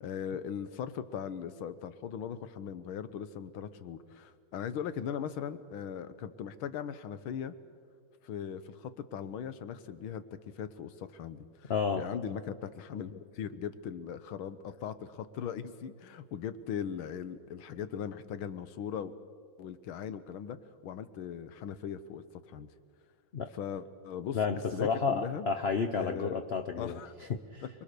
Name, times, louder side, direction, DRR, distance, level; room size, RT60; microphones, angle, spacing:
voice 1, 0.0-7.5 8.2-11.7 12.0-19.1 19.6-20.6 20.8-22.7 23.5-24.4 24.7-25.5 25.9-26.4 26.8-27.1 27.6-27.7, left 8 dB, 90° left, 13 dB, 1.8 m, -39 dB
voice 2, 11.7-12.1 23.3-23.5 24.3-27.0 27.3-27.6, left 5 dB, 60° left, 7 dB, 0.6 m, -31 dB
25.0 x 22.5 x 6.7 m, 2.1 s
omnidirectional pair, 2.2 m